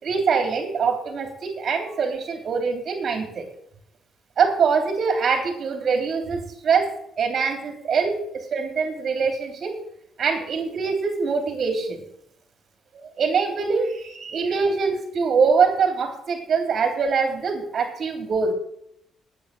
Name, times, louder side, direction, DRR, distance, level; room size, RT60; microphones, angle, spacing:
voice 1, 0.0-3.4 4.4-6.9 7.2-9.8 10.2-12.0 13.2-18.5, right 5 dB, 55° right, 4 dB, 3.4 m, -23 dB
9.2 x 8.5 x 7.8 m, 0.71 s
cardioid pair, 90°, 0 cm